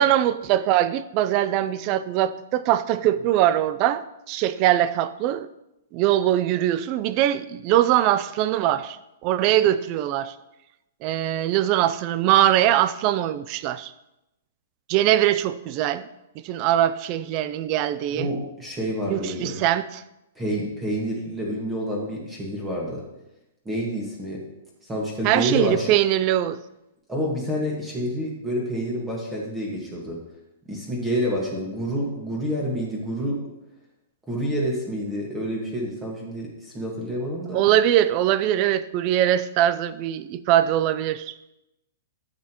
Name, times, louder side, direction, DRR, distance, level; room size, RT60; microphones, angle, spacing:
voice 1, 0.0-5.5 5.9-9.0 9.2-10.3 11.0-13.9 14.9-16.0 16.4-18.3 19.1-20.0 25.2-26.6 37.5-41.3, right 12 dB, 35° right, 0.4 m, -22 dB
voice 2, 18.1-19.6 20.4-23.0 23.7-24.4 24.9-25.9 27.1-30.2 30.7-33.4 34.3-37.6, equal, 10° right, 1.7 m, -28 dB
12.0 x 7.4 x 3.0 m
hypercardioid pair, 160°, 0 cm